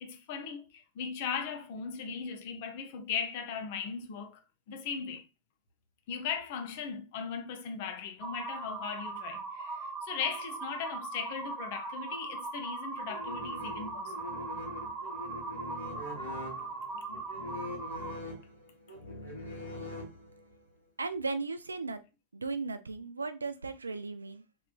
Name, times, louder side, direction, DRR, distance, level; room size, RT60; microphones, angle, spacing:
voice 1, 0.0-4.4 4.7-5.2 6.1-14.1, left 6 dB, 50° left, 0.5 m, -38 dB
sound 1, 8.2-18.1, right 3 dB, 20° right, 0.8 m, -39 dB
sound 2, 13.1-20.6, left 2 dB, 85° left, 1.2 m, -43 dB
voice 2, 21.0-22.0 22.3-24.4, right 3 dB, 75° right, 0.3 m, -36 dB
3.0 x 3.0 x 2.3 m
figure-of-eight pair, 90°, 0 cm